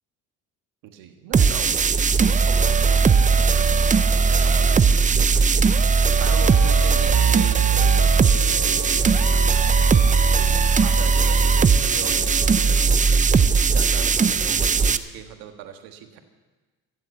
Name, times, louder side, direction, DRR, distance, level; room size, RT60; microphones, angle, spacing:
voice 1, 0.8-5.6 6.0-16.2, right 10 dB, 75° right, 6 dB, 1.6 m, -40 dB
sound 1, 1.3-15.0, right 5 dB, 20° right, 0.6 m, -18 dB
Wind instrument woodwind instrument, 6.2-12.8, left 1 dB, 85° left, 3.2 m, -37 dB
14.5 x 7.5 x 8.2 m, 1.3 s
supercardioid pair, 75°, 34 cm